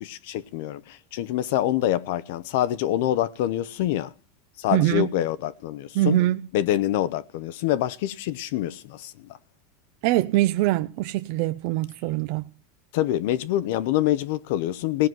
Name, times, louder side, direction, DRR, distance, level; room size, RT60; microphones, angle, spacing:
voice 1, 0.0-4.1 4.6-6.2 6.5-9.3 12.9-15.1, left 13 dB, 60° left, 0.6 m, -26 dB
voice 2, 4.7-5.1 5.9-6.4 10.0-12.5, right 16 dB, 50° right, 0.6 m, -23 dB
17.5 x 6.1 x 9.2 m
supercardioid pair, 160°, 0 cm